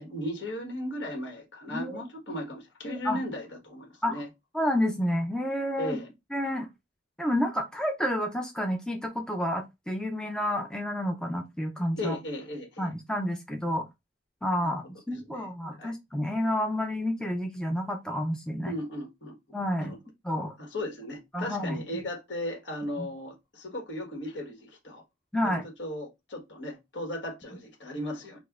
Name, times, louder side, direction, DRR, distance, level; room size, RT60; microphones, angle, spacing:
voice 1, 0.0-4.3 5.8-6.1 12.0-12.9 14.6-14.7 15.3-15.5 15.8-15.9 18.7-19.3 19.8-20.0 20.6-25.0 25.4-28.4, left 1 dB, 75° left, 1.3 m, -36 dB
voice 2, 1.7-2.0 2.9-3.2 4.0-4.2 4.5-6.0 6.3-6.7 7.2-12.2 12.8-13.8 14.4-18.7 19.5-19.9 20.2-20.5 21.3-21.8 23.0-23.1 25.3-25.6, equal, 5° left, 0.4 m, -30 dB
5.1 x 2.1 x 2.4 m
head